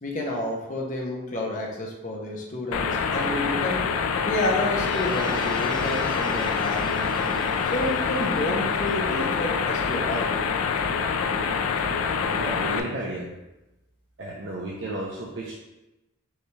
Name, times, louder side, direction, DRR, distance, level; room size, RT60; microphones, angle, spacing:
voice 1, 0.0-3.8 4.2-7.2 7.6-10.3, left 1 dB, 35° left, -1 dB, 0.6 m, -30 dB
sound 1, 2.7-12.8, left 5 dB, 85° left, 0.4 m, -26 dB
sound 2, 4.7-9.5, left 1 dB, 70° left, 1.4 m, -38 dB
voice 2, 12.1-13.3 14.2-15.6, right 1 dB, 60° right, -4 dB, 0.5 m, -33 dB
5.4 x 2.3 x 3.1 m, 0.97 s
head